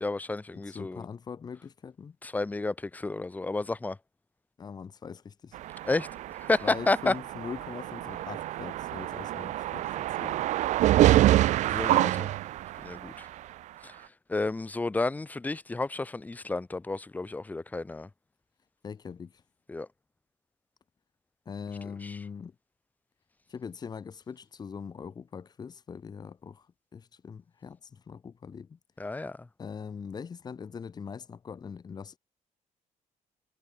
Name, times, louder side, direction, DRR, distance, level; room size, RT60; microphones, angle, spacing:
voice 1, 0.0-1.0 2.2-4.0 5.8-6.1 6.4-7.1 11.7-12.4 12.8-13.3 13.8-14.0 14.3-18.1 19.7-19.9 22.0-22.2 29.0-29.5, left 2 dB, 10° left, 1.2 m, -31 dB
voice 2, 0.7-2.2 4.6-5.6 6.6-10.5 18.8-19.4 21.4-22.5 23.5-26.7 26.9-28.8 29.6-32.2, left 6 dB, 30° left, 3.0 m, -42 dB
sound 1, 5.5-13.2, right 14 dB, 65° right, 0.4 m, -26 dB
cardioid pair, 165°, 13 cm